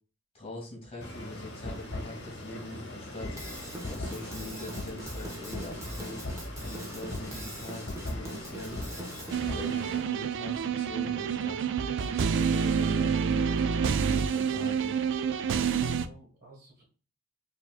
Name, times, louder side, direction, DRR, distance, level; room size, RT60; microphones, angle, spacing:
voice 1, 0.3-3.4 3.9-6.2 6.6-8.8 9.4-11.7 12.1-15.0, left 1 dB, 30° left, -1 dB, 1.8 m, -42 dB
sound 1, 1.0-10.0, left 1 dB, 55° left, 1.0 m, -40 dB
Drum kit / Drum, 3.4-9.4, right 1 dB, 15° right, 0.9 m, -41 dB
sound 2, 9.3-16.1, right 6 dB, 60° right, 0.3 m, -28 dB
voice 2, 15.3-15.7 15.9-16.8, right 3 dB, 40° right, -3 dB, 1.6 m, -53 dB
4.6 x 2.7 x 2.4 m, 0.37 s
head